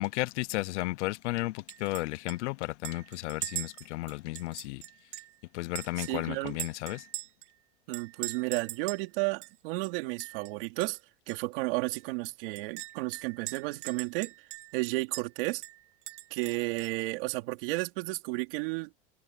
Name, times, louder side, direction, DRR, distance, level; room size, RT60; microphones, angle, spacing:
voice 1, 0.0-4.8 5.5-7.1, left 19 dB, 75° left, 0.6 m, -33 dB
Chink clink, 1.7-2.0 2.3-2.4 2.8-5.3 5.7-7.5 7.9-9.1 9.4-9.5 9.8-10.5 10.8-11.0 11.3-11.4 11.9-14.8 15.1-15.3 15.6-17.0, right 15 dB, 85° right, 1.7 m, -41 dB
voice 2, 6.0-6.6 7.9-11.0 11.3-14.3 14.7-15.6 16.3-18.9, right 23 dB, 50° right, 3.3 m, -32 dB
supercardioid pair, 175°, 35 cm